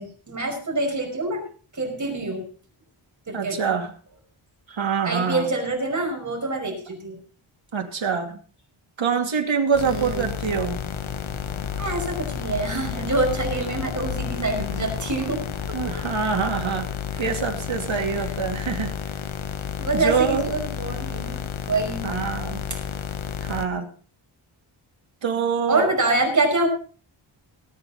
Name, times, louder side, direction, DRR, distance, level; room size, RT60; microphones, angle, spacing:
voice 1, 0.0-1.4 1.7-2.4 3.3-3.6 5.0-7.2 9.8-10.3 11.8-15.4 15.7-15.9 17.1-17.4 18.1-18.3 19.8-22.1 25.7-26.7, right 2 dB, 35° right, 0 dB, 5.5 m, -26 dB
voice 2, 3.3-3.9 4.7-5.5 7.7-8.4 9.0-10.8 15.7-16.9 17.2-18.9 19.9-20.5 22.0-22.6 23.4-23.9 25.2-25.9, right 6 dB, 70° right, 3 dB, 2.6 m, -25 dB
sound 1, 9.7-23.7, left 8 dB, 75° left, 0.9 m, -31 dB
sound 2, 10.1-16.1, left 4 dB, 35° left, 4.0 m, -42 dB
18.5 x 9.7 x 4.1 m, 0.39 s
wide cardioid pair, 170°, 48 cm